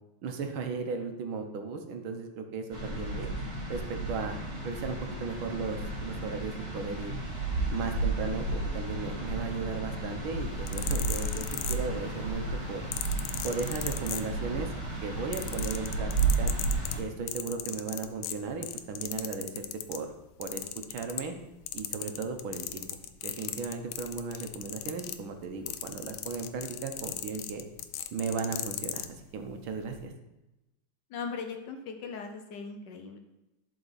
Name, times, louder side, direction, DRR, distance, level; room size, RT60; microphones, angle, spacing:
voice 1, 0.2-3.3 3.7-4.4 4.6-7.1 7.7-12.8 13.4-14.7 15.0-16.1 16.4-16.5 17.0-20.1 20.4-20.6 20.9-21.3 21.7-27.6 28.1-30.1, right 4 dB, 75° right, 5 dB, 1.6 m, -36 dB
sound 1, 2.7-17.0, right 3 dB, 35° right, 3.1 m, -33 dB
sound 2, 10.5-12.2 12.9-14.7 15.0-20.0 20.4-21.4 21.7-29.1 29.8-30.0, left 12 dB, 85° left, 1.4 m, -37 dB
voice 2, 31.1-33.2, left 5 dB, 65° left, 5 dB, 1.2 m, -39 dB
11.0 x 4.7 x 4.1 m, 0.99 s
omnidirectional pair, 2.3 m